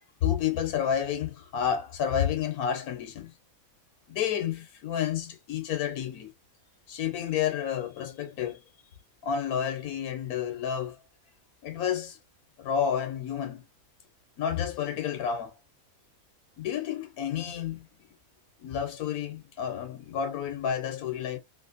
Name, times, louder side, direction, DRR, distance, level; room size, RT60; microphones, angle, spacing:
voice 1, 0.2-3.3 4.1-6.3 6.9-8.6 9.2-11.0 11.6-12.2 12.6-13.6 14.4-15.5 16.6-17.9 18.6-21.4, left 9 dB, 80° left, 1.3 m, -30 dB
3.3 x 2.6 x 2.5 m
omnidirectional pair, 1.5 m